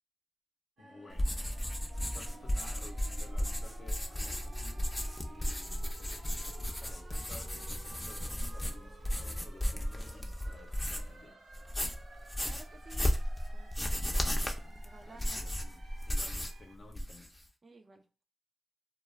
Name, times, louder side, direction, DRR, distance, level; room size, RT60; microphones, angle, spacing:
voice 1, 0.8-1.4 2.0-4.9 5.2-11.4 14.6-14.7 15.0-17.4, left 2 dB, 65° left, 0.6 m, -55 dB
sound 1, 0.8-16.8, right 3 dB, 85° right, 0.9 m, -55 dB
sound 2, 1.1-11.2 11.5-16.6 16.9-17.4, equal, 10° left, 0.5 m, -35 dB
voice 2, 12.4-13.1 13.5-14.2 14.7-15.4 17.6-18.0, right 3 dB, 45° right, 0.3 m, -55 dB
2.3 x 2.3 x 3.0 m
cardioid pair, 70°, 0 cm